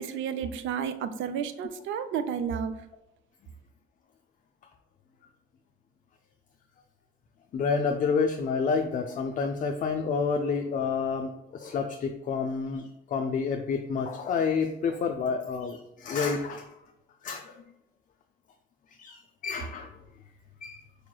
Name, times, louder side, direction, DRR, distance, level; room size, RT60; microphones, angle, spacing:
voice 1, 0.0-2.7, right 7 dB, 80° right, 10 dB, 0.4 m, -31 dB
voice 2, 7.5-16.7 17.2-17.5 19.0-19.9 20.6-20.8, left 5 dB, 40° left, 5 dB, 0.4 m, -29 dB
4.7 x 3.0 x 2.2 m, 0.90 s
cardioid pair, 90°, 20 cm